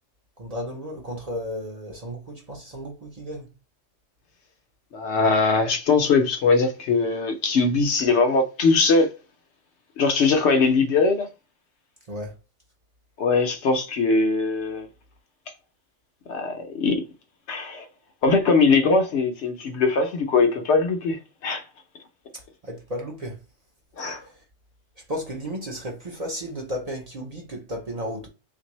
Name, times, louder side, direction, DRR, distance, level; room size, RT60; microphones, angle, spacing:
voice 1, 0.4-3.5 12.1-12.3 22.3-23.4 24.3-24.4 25.1-28.3, equal, 40° right, 0.6 m, -34 dB
voice 2, 4.9-9.1 10.0-11.3 13.2-14.9 16.3-17.0 17.5-17.9 18.2-21.6 24.0-24.2, left 4 dB, 70° left, 0.9 m, -21 dB
3.4 x 2.6 x 2.9 m
omnidirectional pair, 1.2 m